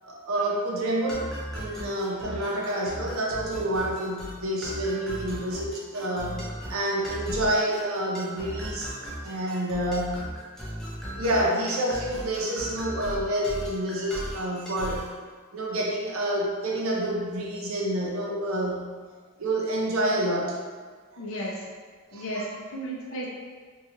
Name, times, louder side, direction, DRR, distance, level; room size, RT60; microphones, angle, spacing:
voice 1, 0.0-1.3 1.5-8.9 9.2-10.3 11.2-15.1 15.5-18.9 19.4-20.6 21.1-21.2 22.1-22.5, right 1 dB, 65° right, -2 dB, 0.5 m, -28 dB
sound 1, 1.1-15.2, equal, ahead, 0.4 m, -37 dB
voice 2, 21.2-21.7 22.1-23.3, right 1 dB, 65° left, -4 dB, 0.5 m, -34 dB
2.9 x 2.3 x 2.8 m, 1.5 s
head